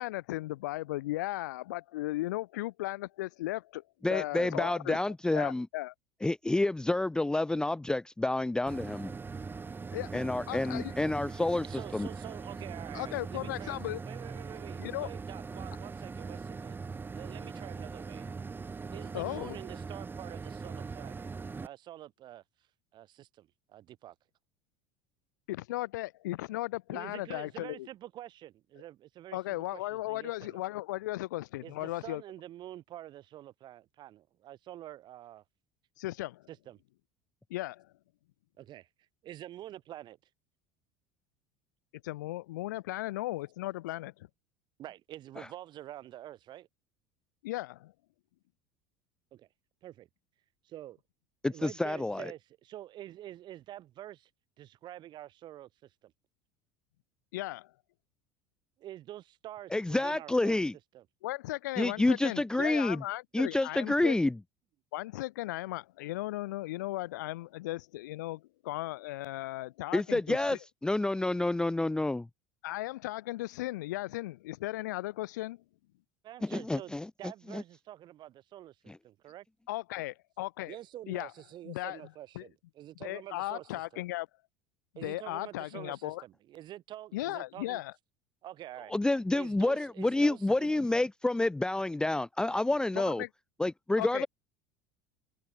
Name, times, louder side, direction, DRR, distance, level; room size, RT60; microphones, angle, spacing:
voice 1, 0.0-3.8 4.1-5.0 5.3-5.9 9.9-10.9 12.9-14.0 14.8-15.1 19.1-19.6 25.5-27.9 29.3-32.2 36.0-36.4 37.5-37.9 42.0-44.3 47.4-47.9 57.3-57.7 61.2-64.2 64.9-70.6 72.6-75.6 79.7-80.7 81.1-81.3 81.6-82.0 82.3-82.4 83.0-84.3 84.9-86.2 87.1-87.9 92.9-93.3 94.0-94.3, left 17 dB, 80° left, 1.5 m, -36 dB
voice 2, 4.0-5.7 6.2-9.1 10.1-11.7 11.9-12.1 51.4-52.3 59.7-60.7 61.8-63.0 63.3-64.4 69.9-72.3 76.4-77.1 77.5-77.6 78.9-79.0 88.9-93.2 93.6-94.3, left 2 dB, 10° left, 0.7 m, -29 dB
sound 1, 8.7-21.7, right 4 dB, 20° right, 1.6 m, -41 dB
voice 3, 11.6-13.8 14.0-16.8 17.1-18.3 18.9-22.4 22.9-24.2 26.9-30.6 31.6-35.4 36.5-36.8 38.6-38.9 39.2-40.2 44.8-46.7 49.3-49.5 49.8-50.1 50.6-51.0 51.5-54.3 54.6-56.1 58.8-60.6 60.9-61.0 76.2-78.8 79.0-79.5 80.7-84.0 85.0-87.8 88.4-88.9 89.3-90.8, right 13 dB, 50° right, 7.2 m, -47 dB
hypercardioid pair, 80°, 10 cm